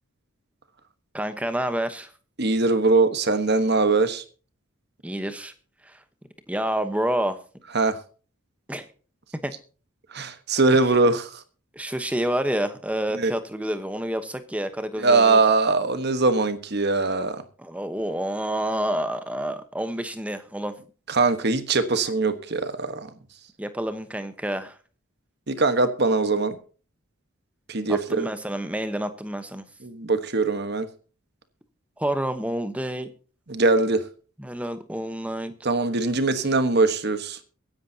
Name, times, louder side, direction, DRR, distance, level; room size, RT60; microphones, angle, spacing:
voice 1, 1.1-2.1 5.0-5.5 5.8-6.0 6.5-7.4 8.7-8.9 9.4-9.5 11.7-15.4 17.6-20.7 23.6-24.7 27.9-29.6 32.0-33.1 34.4-35.5, right 1 dB, 5° right, 10 dB, 1.0 m, -28 dB
voice 2, 2.4-4.2 7.7-8.0 10.1-11.4 13.1-13.3 15.0-17.4 21.1-23.1 25.5-26.6 27.7-28.3 29.8-30.9 33.5-34.0 35.6-37.4, right 3 dB, 50° right, 10 dB, 1.3 m, -21 dB
23.0 x 10.5 x 2.8 m, 0.38 s
head